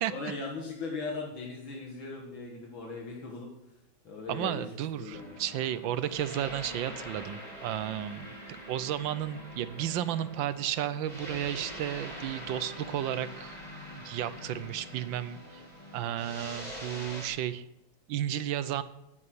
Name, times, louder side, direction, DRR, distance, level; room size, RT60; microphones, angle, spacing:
voice 1, 0.1-3.5 4.0-4.7 4.9-5.3, left 3 dB, 80° left, -1 dB, 2.6 m, -38 dB
voice 2, 4.3-8.3 8.7-13.6 13.9-15.6 15.9-17.6 18.1-18.8, right 11 dB, 80° right, 14 dB, 1.5 m, -33 dB
sound 1, 5.1-17.3, equal, 20° left, 4.9 m, -44 dB
9.9 x 9.6 x 8.0 m, 0.90 s
omnidirectional pair, 2.1 m